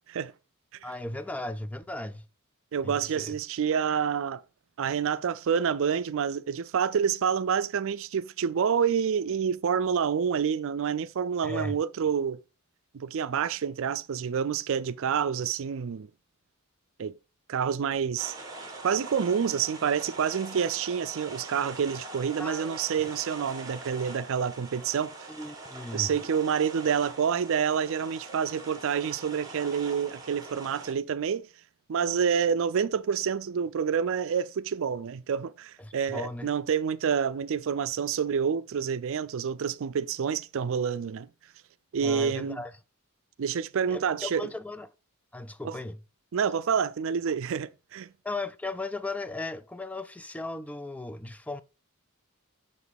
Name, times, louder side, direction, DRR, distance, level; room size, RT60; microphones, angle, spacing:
voice 1, 0.8-2.3 2.8-3.4 11.4-11.8 22.4-22.9 25.3-26.1 35.8-36.5 42.0-42.7 43.9-44.9 45.3-46.0 48.2-51.6, left 2 dB, 5° left, 0.3 m, -36 dB
voice 2, 2.7-4.4 4.8-12.4 12.9-16.1 17.0-17.1 17.5-18.4 18.8-25.1 25.9-31.5 31.9-41.3 41.9-42.6 43.4-44.5 45.6-45.7 46.3-48.1, right 7 dB, 65° right, 0.4 m, -28 dB
sound 1, 18.2-30.9, right 2 dB, 15° right, 1.7 m, -43 dB
6.6 x 5.9 x 3.5 m
head